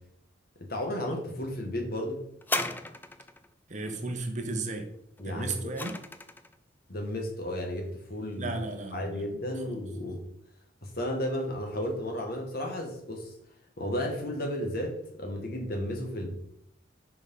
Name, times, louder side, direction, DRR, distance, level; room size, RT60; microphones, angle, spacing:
voice 1, 0.7-2.2 5.2-5.7 6.9-8.5 8.9-10.2 10.8-13.3 13.8-16.3, left 1 dB, 50° left, 2 dB, 1.6 m, -33 dB
sound 1, 2.4-3.5 5.2-6.5 7.4-7.5, left 2 dB, 10° left, 0.4 m, -34 dB
voice 2, 3.7-4.9 5.2-6.0 8.4-9.2 9.6-9.8, right 2 dB, 40° right, 5 dB, 0.9 m, -34 dB
6.3 x 4.9 x 5.4 m, 0.74 s
head